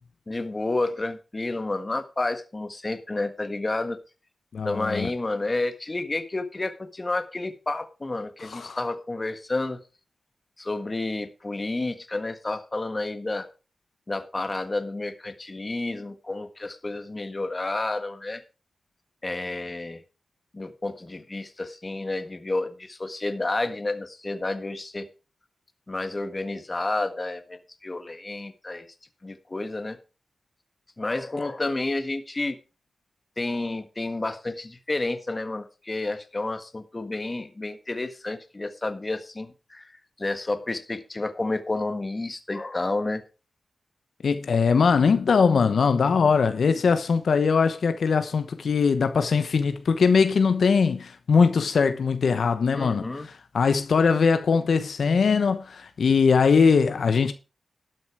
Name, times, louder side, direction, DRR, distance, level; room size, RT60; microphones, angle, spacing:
voice 1, 0.3-4.0 4.6-9.8 10.6-13.5 14.1-18.4 19.2-20.0 20.5-25.1 25.9-28.9 29.2-30.0 31.0-32.6 33.4-43.2 52.7-53.3, left 2 dB, 30° left, 1.5 m, -30 dB
voice 2, 4.5-5.1 8.4-8.8 44.2-57.3, left 5 dB, 80° left, 1.0 m, -21 dB
12.5 x 7.7 x 4.9 m
wide cardioid pair, 85°, 0 cm